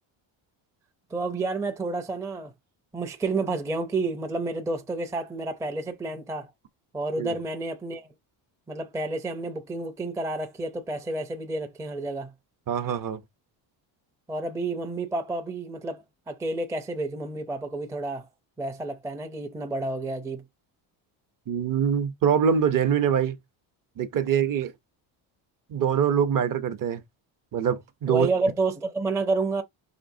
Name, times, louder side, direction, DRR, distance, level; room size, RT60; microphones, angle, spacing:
voice 1, 1.1-2.5 2.9-6.5 6.9-8.1 8.7-12.3 14.3-18.3 18.6-20.4 28.1-29.6, right 2 dB, 5° right, 0.5 m, -30 dB
voice 2, 12.7-13.2 21.5-23.4 24.0-24.7 25.7-27.0 27.5-28.3, right 8 dB, 45° right, 0.7 m, -24 dB
5.9 x 3.3 x 2.6 m
cardioid pair, 150°, 47 cm